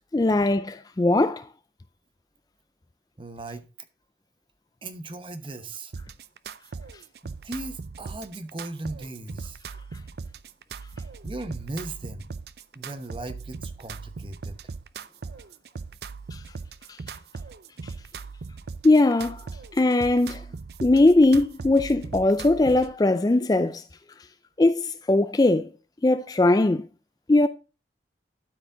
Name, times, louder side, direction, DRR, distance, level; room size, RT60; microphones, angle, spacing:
voice 1, 0.1-1.5 16.3-16.4 18.8-19.5 19.7-20.4 20.8-23.8 24.6-25.7 26.0-26.8 27.3-27.5, left 2 dB, 20° left, 0.3 m, -20 dB
voice 2, 3.2-3.6 4.8-5.9 7.2-9.6 11.2-12.3 12.7-14.6, right 2 dB, 30° right, 0.8 m, -37 dB
sound 1, 5.9-22.9, right 4 dB, 60° right, 0.4 m, -39 dB
12.5 x 5.0 x 3.8 m
head